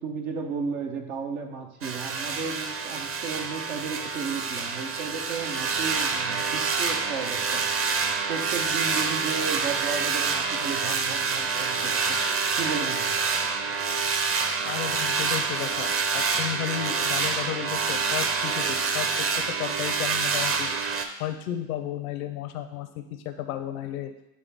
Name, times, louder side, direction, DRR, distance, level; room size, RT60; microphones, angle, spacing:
voice 1, 0.0-7.6 8.0-12.2 12.6-13.2, right 5 dB, 80° right, 3 dB, 1.0 m, -34 dB
sound 1, 1.8-21.1, right 5 dB, 30° right, 0.6 m, -27 dB
voice 2, 14.6-19.3 19.6-20.7 21.2-24.1, left 11 dB, 80° left, 8 dB, 0.6 m, -33 dB
8.1 x 3.5 x 3.4 m, 0.87 s
hypercardioid pair, 70°, 42 cm